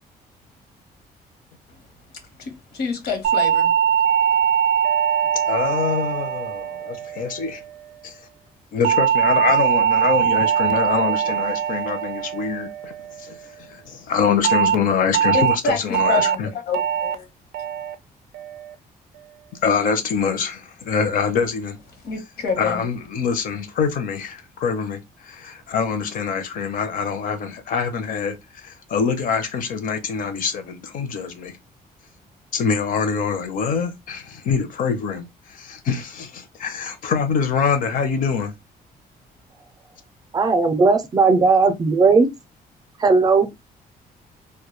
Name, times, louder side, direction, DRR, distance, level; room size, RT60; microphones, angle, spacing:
voice 1, 2.4-4.0 15.3-17.3 22.0-22.8, left 5 dB, 80° left, 0.9 m, -27 dB
sound 1, 3.2-7.7 8.8-13.3 14.4-14.7 15.1-15.5 15.9-16.3 16.7-17.1 17.5-17.9 18.3-18.7, right 9 dB, 90° right, 0.4 m, -21 dB
voice 2, 5.4-7.6 8.0-8.2 8.7-12.9 13.2-16.5 19.6-21.8 22.6-31.6 32.5-38.5, left 6 dB, 60° left, 0.6 m, -24 dB
voice 3, 40.3-42.3 43.0-43.5, right 4 dB, 25° right, 0.4 m, -16 dB
2.2 x 2.2 x 2.9 m
cardioid pair, 155°, 16 cm